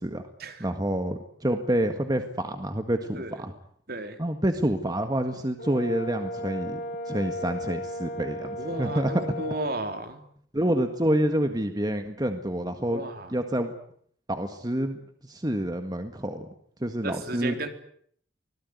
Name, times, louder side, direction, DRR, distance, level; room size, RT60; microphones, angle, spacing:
voice 1, 0.6-3.5 4.2-6.8 7.1-9.1 10.5-13.0 13.3-13.7 14.3-16.5 16.8-17.7, right 1 dB, 20° right, 7 dB, 1.8 m, -28 dB
voice 2, 3.9-4.2 8.6-10.3 12.9-13.4 17.0-17.7, right 2 dB, 55° right, 6 dB, 3.8 m, -34 dB
Brass instrument, 5.6-9.7, left 1 dB, 55° left, 6.9 m, -35 dB
25.0 x 18.5 x 9.6 m, 0.64 s
head